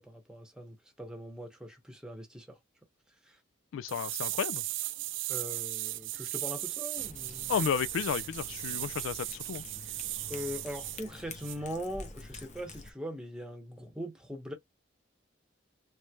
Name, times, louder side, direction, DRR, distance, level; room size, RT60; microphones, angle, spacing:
voice 1, 0.0-2.6 3.2-3.4 5.3-7.6 10.3-14.5, equal, 5° right, 0.9 m, -41 dB
voice 2, 3.7-4.6 7.5-9.6, left 7 dB, 80° left, 0.3 m, -32 dB
sound 1, 3.9-11.0 11.4-11.6, right 16 dB, 70° right, 0.4 m, -37 dB
Cat, 7.0-12.9, left 3 dB, 35° left, 0.7 m, -48 dB
3.2 x 3.1 x 2.2 m
head